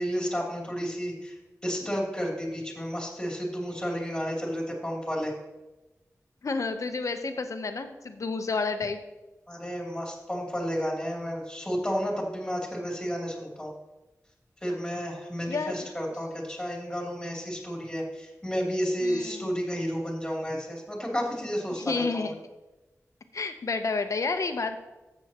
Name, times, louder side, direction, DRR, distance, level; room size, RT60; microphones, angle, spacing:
voice 1, 0.0-5.3 9.5-13.7 14.6-22.3, equal, 10° left, -3 dB, 2.9 m, -31 dB
voice 2, 6.4-9.0 15.5-15.9 19.0-19.5 21.8-22.3 23.3-24.8, left 4 dB, 65° left, 8 dB, 0.8 m, -30 dB
13.5 x 7.8 x 2.9 m, 1.1 s
wide cardioid pair, 95°, 6 cm